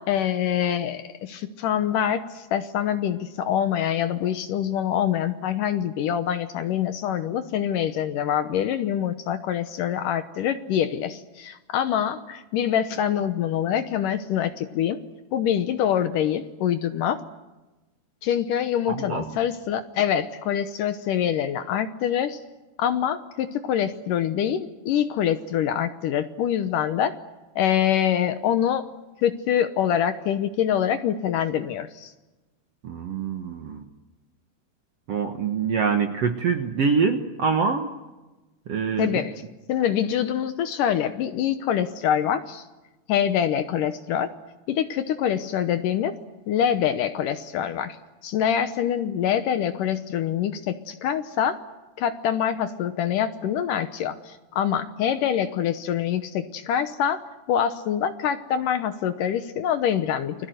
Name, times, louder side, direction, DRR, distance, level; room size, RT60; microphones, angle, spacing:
voice 1, 0.0-15.0 15.3-17.2 18.2-22.4 22.8-27.1 27.6-28.9 29.2-32.1 39.0-39.3 39.7-42.6 43.1-44.3 44.7-46.1 46.5-48.0 48.2-51.6 52.0-57.2 57.5-60.5, left 9 dB, 70° left, 10 dB, 2.2 m, -25 dB
voice 2, 18.9-19.3 32.8-33.8 35.1-37.9 38.7-39.1, right 5 dB, 60° right, 5 dB, 1.7 m, -25 dB
29.0 x 21.0 x 7.9 m, 1.1 s
omnidirectional pair, 4.6 m